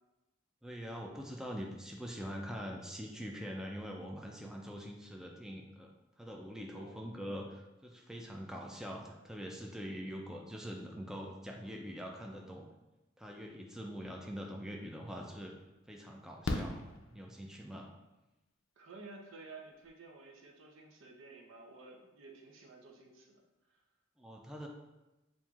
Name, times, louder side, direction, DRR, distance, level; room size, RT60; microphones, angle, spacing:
voice 1, 0.6-5.9 6.2-12.6 13.2-15.5 15.9-17.9 24.2-24.7, equal, 5° right, 0 dB, 0.3 m, -44 dB
voice 2, 6.7-7.1 18.8-23.4 23.7-23.8, right 3 dB, 75° right, 2 dB, 0.7 m, -53 dB
Fireworks, 14.8-14.9 16.4-17.8 19.5-19.6 19.8-19.9, left 2 dB, 70° left, 0.4 m, -38 dB
7.1 x 2.6 x 2.4 m, 1.0 s
head